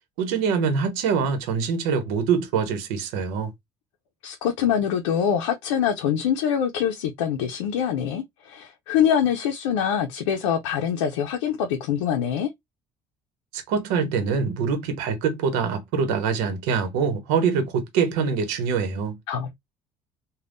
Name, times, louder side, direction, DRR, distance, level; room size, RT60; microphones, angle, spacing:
voice 1, 0.2-3.5 13.5-19.2, right 6 dB, 80° right, 0.9 m, -24 dB
voice 2, 4.2-12.5 19.3-19.5, left 8 dB, 90° left, 0.5 m, -24 dB
3.4 x 2.2 x 2.5 m
hypercardioid pair, 65°, 15 cm